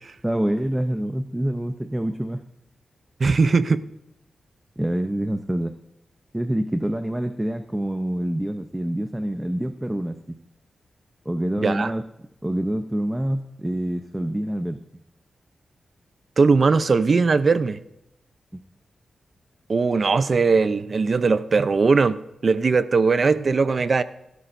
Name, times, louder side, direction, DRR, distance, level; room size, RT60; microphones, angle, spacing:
voice 1, 0.2-2.4 4.8-5.7 6.3-10.4 11.3-12.1 12.4-14.8, right 1 dB, 10° right, 0.7 m, -26 dB
voice 2, 3.2-3.8 11.6-11.9 16.4-17.8 19.7-24.0, right 4 dB, 50° right, 0.6 m, -19 dB
16.5 x 13.0 x 2.7 m
cardioid pair, 80°, 0 cm